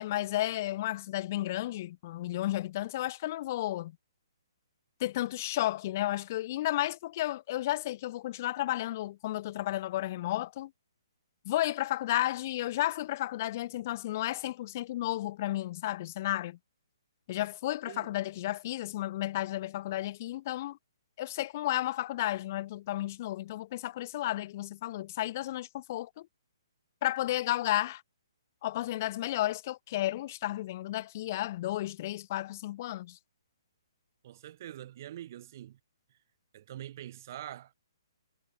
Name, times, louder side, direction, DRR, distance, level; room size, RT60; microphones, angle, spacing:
voice 1, 0.0-3.9 5.0-10.7 11.4-16.6 17.3-20.8 21.2-26.3 27.0-28.0 28.6-33.2, left 15 dB, 35° left, 4.6 m, -32 dB
voice 2, 34.2-35.8 36.5-37.7, right 12 dB, 40° right, 4.9 m, -44 dB
hypercardioid pair, 165°, 3 cm